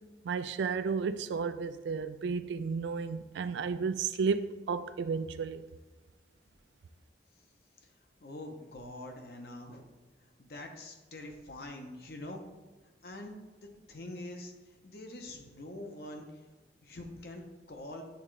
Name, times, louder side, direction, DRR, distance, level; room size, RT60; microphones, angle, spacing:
voice 1, 0.2-5.6, right 5 dB, 80° right, 0.3 m, -33 dB
voice 2, 8.2-9.9 10.4-12.5 13.0-13.4 13.9-14.5 14.8-16.3 16.8-18.0, left 1 dB, 55° left, 0.8 m, -44 dB
8.1 x 3.6 x 3.2 m
head